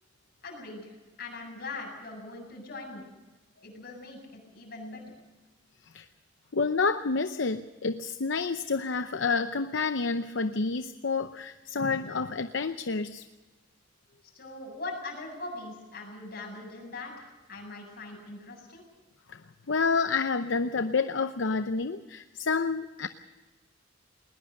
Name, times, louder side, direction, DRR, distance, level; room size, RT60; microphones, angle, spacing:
voice 1, 0.4-3.1 3.6-5.0 14.2-18.8, left 3 dB, 55° left, 1 dB, 7.8 m, -41 dB
voice 2, 6.5-13.2 19.3-19.4 19.7-23.1, left 4 dB, 75° left, 10 dB, 0.7 m, -29 dB
20.5 x 20.5 x 6.6 m, 1.2 s
head